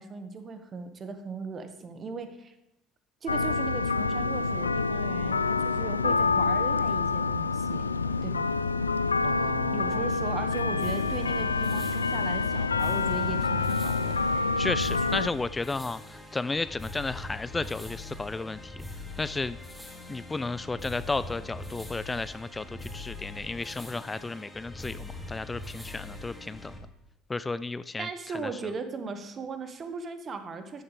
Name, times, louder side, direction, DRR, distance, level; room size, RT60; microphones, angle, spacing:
voice 1, 0.0-2.5 3.2-7.9 8.2-8.5 9.7-14.1 15.0-15.1 28.0-30.8, right 4 dB, 40° right, 8 dB, 1.6 m, -38 dB
sound 1, 3.3-15.3, left 4 dB, 90° left, 0.3 m, -27 dB
voice 2, 9.2-10.0 14.6-18.8 19.2-19.6 20.1-26.7 27.3-28.1, left 3 dB, 20° left, 15 dB, 0.4 m, -33 dB
sound 2, 10.8-26.8, left 2 dB, 5° left, 2.5 m, -42 dB
14.0 x 11.0 x 3.4 m, 0.91 s
figure-of-eight pair, 60°, 0 cm